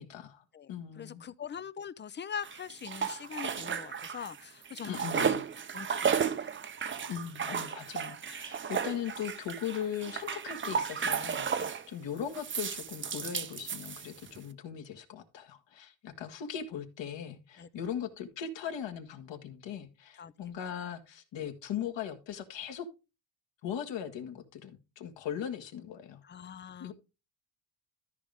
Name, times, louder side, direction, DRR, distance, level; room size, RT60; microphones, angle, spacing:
voice 1, 0.0-1.2 4.9-5.4 7.1-22.9 23.6-26.2 26.8-26.9, left 8 dB, 65° left, 1.8 m, -39 dB
voice 2, 1.0-5.4 5.7-6.5 11.6-11.7 17.6-17.7 20.2-20.3 26.2-26.9, left 7 dB, 25° left, 0.4 m, -42 dB
sound 1, 2.4-4.4 4.7-11.9 12.3-14.4, right 7 dB, 25° right, 0.6 m, -34 dB
13.5 x 5.2 x 3.4 m
cardioid pair, 120°, 47 cm